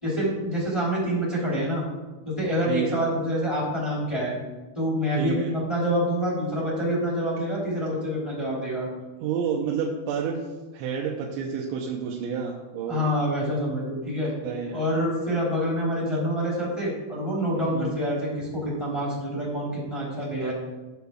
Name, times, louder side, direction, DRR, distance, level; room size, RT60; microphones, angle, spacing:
voice 1, 0.0-1.8 2.2-4.3 4.7-8.9 12.9-14.3 14.7-20.5, equal, 10° left, -6 dB, 2.4 m, -27 dB
voice 2, 5.1-5.5 9.2-10.4 10.7-13.1 14.4-14.8 17.7-17.9 20.4-20.5, right 6 dB, 80° right, -1 dB, 3.1 m, -29 dB
17.0 x 6.9 x 2.4 m, 1.2 s
omnidirectional pair, 5.4 m